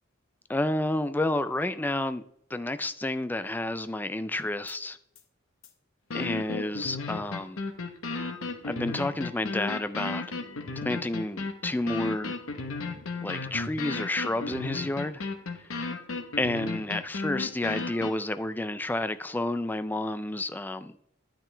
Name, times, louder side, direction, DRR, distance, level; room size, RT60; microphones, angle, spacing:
voice 1, 0.5-2.2 2.5-5.0 6.1-7.6 8.6-10.3 10.8-12.4 13.2-15.2 16.4-21.0, left 1 dB, 10° left, 0.3 m, -30 dB
sound 1, 4.7-4.8 5.2-5.3 5.6-5.7 6.1-18.1, left 3 dB, 85° left, 1.1 m, -34 dB
10.5 x 8.9 x 3.3 m
head